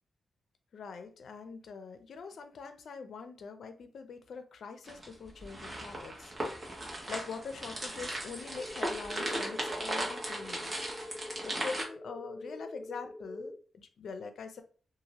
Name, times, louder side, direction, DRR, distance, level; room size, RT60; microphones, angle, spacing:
voice 1, 0.7-6.8 7.1-10.7 11.4-14.6, left 5 dB, 75° left, 0.5 m, -44 dB
sound 1, 4.9-11.8, right 1 dB, 35° right, 1.1 m, -37 dB
sound 2, 8.6-13.6, left 1 dB, 10° left, 0.3 m, -45 dB
2.7 x 2.5 x 2.9 m
cardioid pair, 70°, 0 cm